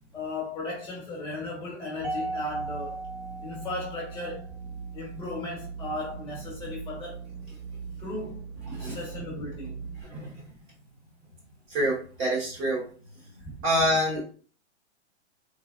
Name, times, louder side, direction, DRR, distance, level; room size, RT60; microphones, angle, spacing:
voice 1, 0.1-3.0 3.4-4.5 4.9-7.2 8.0-8.4 8.8-9.8 13.4-13.5, left 2 dB, 15° left, 1.0 m, -36 dB
sound 1, 2.0-10.0, right 6 dB, 60° right, 0.6 m, -41 dB
Mallet percussion, 2.0-4.5, right 1 dB, 80° right, 1.5 m, -36 dB
voice 2, 8.7-9.0 10.0-10.5 11.7-12.8 13.6-14.2, equal, 35° right, 1.2 m, -27 dB
3.4 x 2.1 x 2.4 m
hypercardioid pair, 120°, 36 cm